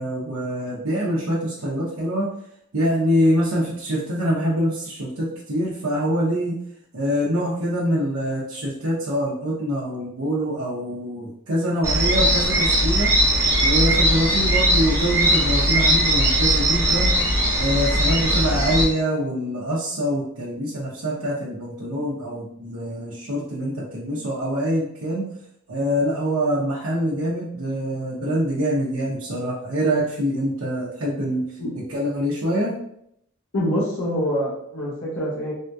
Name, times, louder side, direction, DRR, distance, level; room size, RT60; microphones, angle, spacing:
voice 1, 0.0-2.3 2.7-6.6 6.9-13.1 13.6-17.1 17.6-25.3 25.7-31.4 31.9-32.7, equal, 80° right, -8 dB, 0.8 m, -24 dB
sound 1, 11.8-18.8, right 1 dB, 15° right, 1.0 m, -19 dB
voice 2, 33.5-35.5, equal, 70° left, -6 dB, 1.0 m, -25 dB
3.5 x 2.7 x 2.3 m, 0.74 s
head